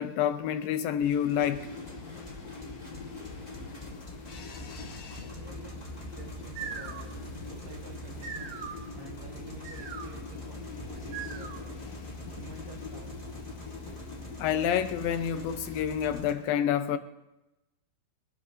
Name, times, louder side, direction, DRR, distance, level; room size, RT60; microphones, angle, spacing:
voice 1, 0.0-1.7 14.4-17.0, left 9 dB, 80° left, 2.4 m, -28 dB
sound 1, 1.0-16.3, equal, 10° left, 2.2 m, -45 dB
sound 2, 1.3-15.8, left 4 dB, 60° left, 1.7 m, -44 dB
voice 2, 5.2-7.1 7.4-8.6 8.9-11.9 12.4-13.2, right 3 dB, 50° right, 2.2 m, -50 dB
sound 3, 6.3-11.9, right 6 dB, 65° right, 2.6 m, -43 dB
23.0 x 12.0 x 3.1 m
omnidirectional pair, 4.4 m